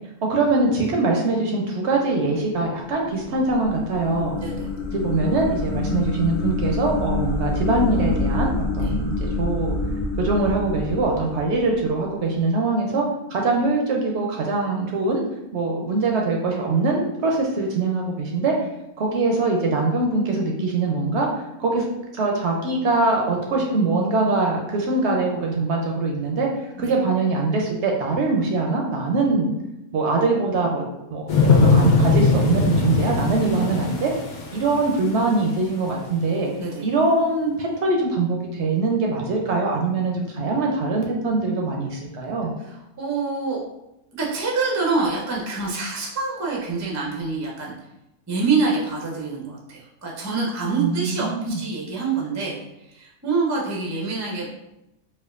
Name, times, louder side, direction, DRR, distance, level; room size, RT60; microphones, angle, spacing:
voice 1, 0.3-4.4 4.9-9.7 10.2-15.2 15.5-18.5 19.0-21.9 22.1-26.5 26.8-29.5 29.9-34.1 34.5-36.5 36.8-42.5 50.8-51.6, right 3 dB, 65° right, 0 dB, 0.7 m, -23 dB
sound 1, 2.8-12.1, left 3 dB, 90° left, 1.2 m, -27 dB
voice 2, 4.3-4.7 8.8-8.9 26.8-26.9 36.6-36.8 42.7-43.6 44.2-47.7 48.3-52.6 52.9-54.5, right 4 dB, 25° right, -3 dB, 0.3 m, -26 dB
sound 2, 31.3-35.3 35.8-35.9, left 3 dB, 60° left, 0.4 m, -20 dB
4.4 x 2.4 x 2.4 m, 0.89 s
omnidirectional pair, 1.4 m